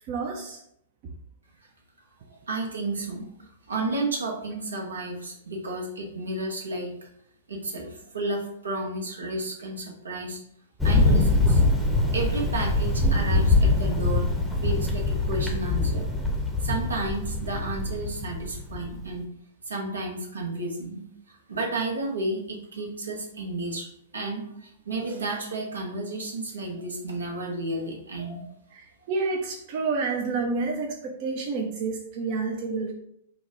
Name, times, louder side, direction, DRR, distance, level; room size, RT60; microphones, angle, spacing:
voice 1, 0.1-0.6 24.9-25.1 28.2-28.4 28.7-32.9, right 4 dB, 50° right, 1 dB, 0.5 m, -29 dB
voice 2, 2.5-6.9 7.5-10.4 10.8-11.6 12.1-14.3 14.6-16.1 16.6-19.2 19.7-21.0 21.3-23.9 24.1-28.4, right 2 dB, 85° right, 0 dB, 1.0 m, -32 dB
Thunder, 10.8-19.0, left 2 dB, 5° left, 0.7 m, -23 dB
4.0 x 2.2 x 3.6 m, 0.73 s
hypercardioid pair, 115°, 0 cm